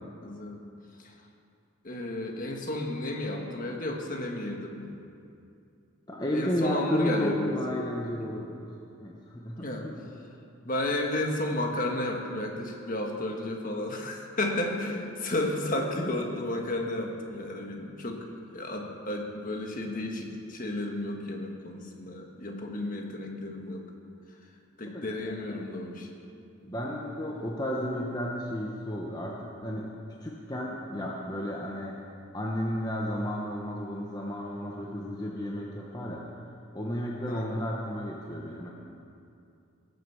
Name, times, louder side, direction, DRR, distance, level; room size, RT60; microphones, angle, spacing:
voice 1, 0.2-0.6 1.0-1.1 1.8-5.0 6.3-7.5 9.6-9.9 10.6-18.2 18.5-23.9 24.8-26.1 37.3-37.6, left 1 dB, 40° left, 1 dB, 1.5 m, -32 dB
voice 2, 6.1-8.7 9.0-10.2 24.9-25.7 26.7-29.9 30.2-32.0 32.3-38.7, left 1 dB, 20° left, -2 dB, 1.0 m, -33 dB
18.5 x 8.0 x 7.1 m, 2.5 s
head